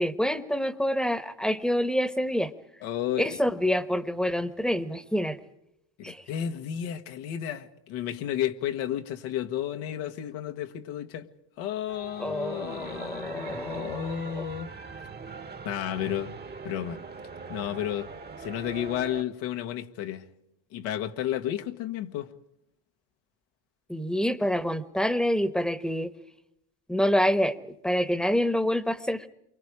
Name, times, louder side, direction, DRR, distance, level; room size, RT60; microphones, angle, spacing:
voice 1, 0.0-2.5 3.2-5.4 6.0-6.2 12.2-14.4 23.9-26.1 26.9-27.6 27.8-29.3, equal, ahead, 1.1 m, -27 dB
voice 2, 2.8-3.4 6.0-11.3 11.6-14.7 15.6-16.3 16.6-17.1 17.5-18.1 18.4-20.3 20.7-22.3, left 11 dB, 80° left, 1.6 m, -32 dB
sound 1, 11.9-19.2, right 5 dB, 20° right, 1.1 m, -42 dB
28.5 x 24.5 x 4.9 m
cardioid pair, 105°, 45 cm